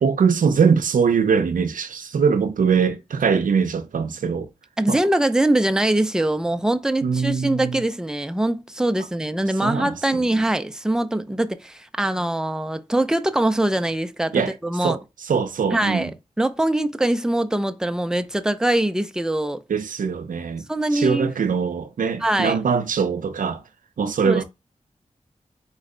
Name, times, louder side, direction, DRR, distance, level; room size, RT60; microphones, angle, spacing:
voice 1, 0.0-4.5 4.9-5.0 7.0-7.8 9.6-10.4 14.3-16.1 19.7-23.6 24.0-24.4, right 6 dB, 75° right, 0.6 m, -22 dB
voice 2, 4.8-15.0 15.7-16.1 16.4-19.6 20.7-21.3 22.2-22.6 24.2-24.4, right 1 dB, 5° right, 0.6 m, -22 dB
4.3 x 3.2 x 3.8 m
cardioid pair, 45°, 14 cm